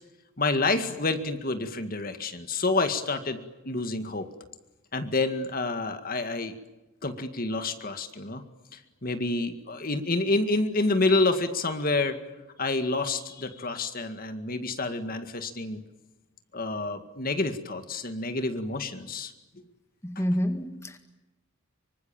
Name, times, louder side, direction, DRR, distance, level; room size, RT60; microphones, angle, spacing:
voice 1, 0.4-4.3 4.9-6.5 7.0-8.4 8.7-12.2 12.6-15.8 16.5-19.3 20.2-20.3, left 2 dB, 45° left, 8 dB, 2.0 m, -28 dB
voice 2, 20.0-21.0, equal, 15° left, 6 dB, 2.0 m, -28 dB
25.5 x 24.5 x 8.9 m, 1.0 s
head